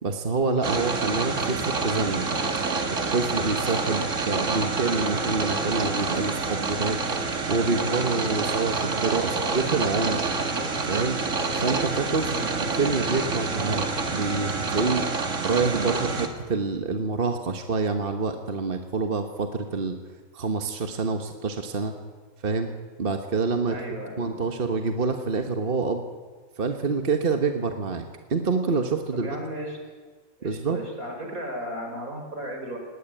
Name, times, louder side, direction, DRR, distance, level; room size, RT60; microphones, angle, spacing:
voice 1, 0.0-2.3 3.1-7.0 7.5-10.3 10.9-11.2 11.6-12.3 12.6-13.8 14.1-20.0 20.3-21.9 22.4-22.7 23.0-23.8 24.2-26.0 26.6-28.0 28.3-29.4 30.4-30.8, right 4 dB, 45° right, 5 dB, 1.5 m, -27 dB
sound 1, 0.6-16.3, right 4 dB, 60° right, 2.3 m, -27 dB
voice 2, 9.1-9.6 12.2-12.6 23.7-24.4 29.1-29.8 30.4-32.8, right 1 dB, 90° right, 3 dB, 5.2 m, -36 dB
19.0 x 18.5 x 9.1 m, 1.4 s
omnidirectional pair, 1.4 m